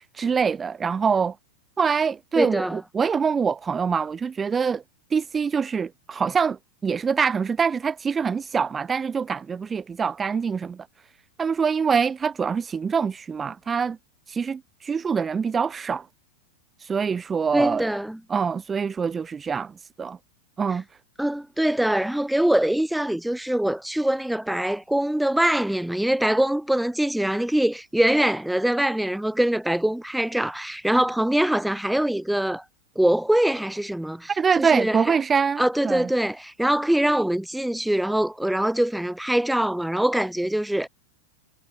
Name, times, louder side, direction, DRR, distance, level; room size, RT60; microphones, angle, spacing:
voice 1, 0.0-1.3 1.8-4.8 5.1-6.6 6.8-10.8 11.4-14.0 14.3-16.0 16.8-17.9 18.3-19.7 20.0-20.2 20.6-20.8 34.4-36.1, right 6 dB, 20° right, 2.2 m, -24 dB
voice 2, 2.3-2.8 17.5-18.2 20.7-20.8 21.2-32.6 32.9-35.2 35.6-40.9, right 1 dB, 5° right, 4.9 m, -23 dB
hypercardioid pair, 100°, 0 cm